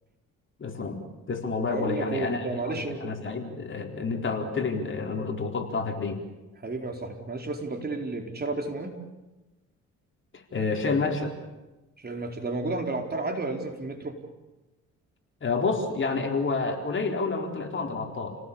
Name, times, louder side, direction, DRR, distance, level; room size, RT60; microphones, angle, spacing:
voice 1, 0.6-1.0 1.3-6.2 10.5-11.3 15.4-18.4, left 4 dB, 40° left, 2 dB, 4.3 m, -29 dB
voice 2, 1.7-3.0 6.6-9.0 12.0-14.1, right 2 dB, 30° right, 3 dB, 4.4 m, -32 dB
29.5 x 18.5 x 8.7 m, 1.1 s
cardioid pair, 90°, 30 cm